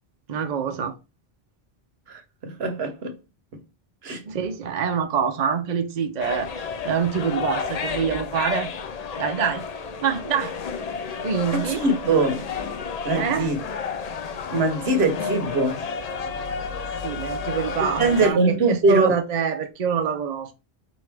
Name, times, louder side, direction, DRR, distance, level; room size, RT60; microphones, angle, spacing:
voice 1, 0.3-0.9 4.3-8.7 9.2-9.6 10.0-10.5 11.2-11.8 13.1-13.5 17.0-20.5, right 7 dB, 50° right, 0.7 m, -25 dB
voice 2, 2.1-3.1 4.0-4.2 11.5-12.5 13.0-13.6 14.5-15.8 17.8-19.2, right 2 dB, 80° right, 1.2 m, -22 dB
sound 1, 6.2-18.3, left 5 dB, 50° left, 0.5 m, -31 dB
4.8 x 2.6 x 3.3 m
omnidirectional pair, 1.0 m